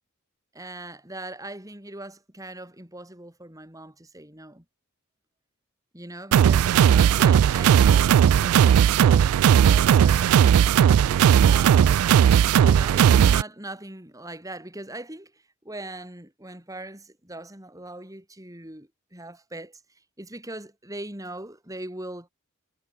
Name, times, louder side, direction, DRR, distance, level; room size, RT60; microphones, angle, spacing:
voice 1, 0.5-4.6 5.9-8.1 8.4-10.4 11.0-12.0 12.6-19.8 20.2-22.3, right 1 dB, 15° right, 4.2 m, -40 dB
sound 1, 6.3-13.4, right 9 dB, 85° right, 0.3 m, -17 dB
head